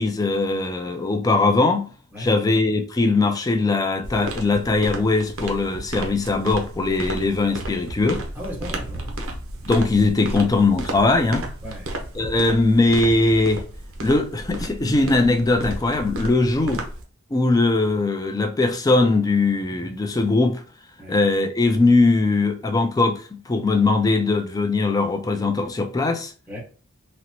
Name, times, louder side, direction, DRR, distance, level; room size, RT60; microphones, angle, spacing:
voice 1, 0.0-1.9 2.2-8.2 9.7-11.4 12.2-13.6 14.0-16.8 17.3-20.6 21.1-26.3, left 3 dB, 15° left, 0.3 m, -20 dB
sound 1, 4.0-17.0, right 1 dB, 65° right, 0.7 m, -33 dB
voice 2, 8.3-9.2 10.3-10.5 11.6-11.9 21.0-21.2 26.5-26.6, equal, 10° right, 1.1 m, -36 dB
3.9 x 2.1 x 2.9 m
head